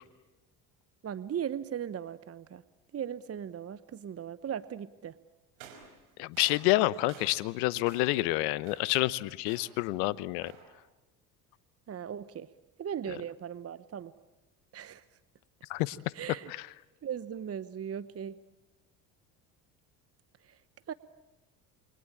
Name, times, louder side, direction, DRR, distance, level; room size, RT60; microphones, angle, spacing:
voice 1, 1.0-2.6 2.9-5.2 11.9-12.5 12.8-14.1 14.7-15.0 16.1-16.5 17.0-18.3 20.4-20.6 20.9-21.0, right 9 dB, 30° right, 16 dB, 1.0 m, -38 dB
sound 1, 5.6-7.6 7.9-8.3 8.6-9.0 9.5-9.9 10.4-10.8, right 7 dB, 75° right, 5.1 m, -52 dB
voice 2, 6.2-10.5 15.7-16.0, left 18 dB, 75° left, 19 dB, 1.0 m, -28 dB
29.0 x 23.0 x 8.6 m, 1.0 s
hypercardioid pair, 65°, 45 cm